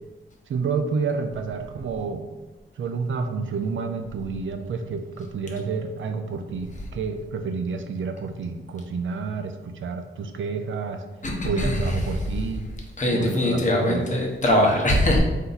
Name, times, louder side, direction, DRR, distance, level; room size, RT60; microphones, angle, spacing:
voice 1, 0.5-2.3 2.8-11.0 11.4-12.7 13.1-14.0, right 5 dB, 75° right, 6 dB, 0.4 m, -29 dB
voice 2, 11.2-11.9 13.0-15.2, left 1 dB, 40° left, -1 dB, 0.9 m, -22 dB
4.4 x 2.7 x 3.9 m, 1.2 s
wide cardioid pair, 135°, 21 cm